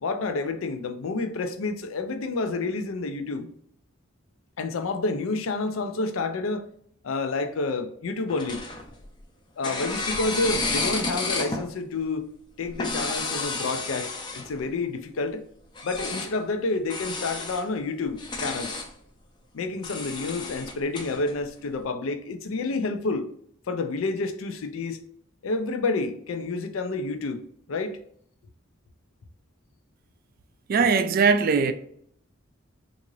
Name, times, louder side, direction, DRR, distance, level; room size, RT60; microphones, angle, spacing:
voice 1, 0.0-3.5 4.6-6.7 7.0-8.6 9.6-12.3 12.6-15.5 15.8-18.8 19.5-23.3 23.7-25.0 25.4-27.4 27.7-28.0, left 3 dB, 90° left, 0.5 m, -29 dB
sound 1, 8.3-9.2 9.6-11.7 12.7-14.6 15.8-16.3 16.9-17.6 18.1-18.9 19.8-21.3, left 3 dB, 20° left, 0.5 m, -31 dB
voice 2, 30.7-31.7, right 5 dB, 45° right, 0.3 m, -20 dB
3.7 x 2.5 x 3.0 m
head